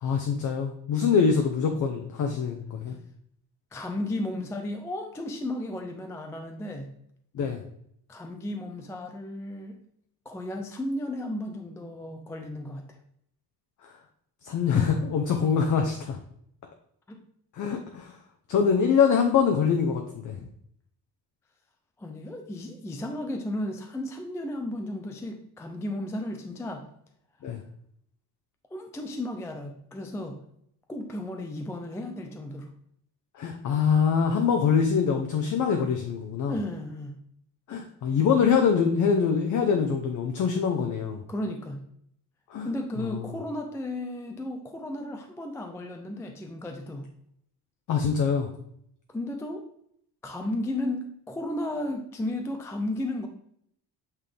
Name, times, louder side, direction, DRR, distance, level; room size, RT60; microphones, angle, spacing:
voice 1, 0.0-3.0 7.3-7.6 14.4-16.2 17.5-18.2 18.5-20.4 27.4-27.6 33.3-36.5 37.7-41.2 42.5-42.7 43.0-43.3 47.9-48.5, left 6 dB, 45° left, 4 dB, 0.7 m, -24 dB
voice 2, 3.7-6.9 8.1-9.8 10.3-13.0 17.1-17.2 22.0-26.8 28.7-30.4 30.9-32.7 36.5-37.2 41.3-41.8 42.6-47.1 49.1-49.6 50.2-53.3, left 1 dB, 5° left, 4 dB, 0.3 m, -34 dB
8.2 x 3.7 x 3.3 m, 0.71 s
cardioid pair, 175°, 41 cm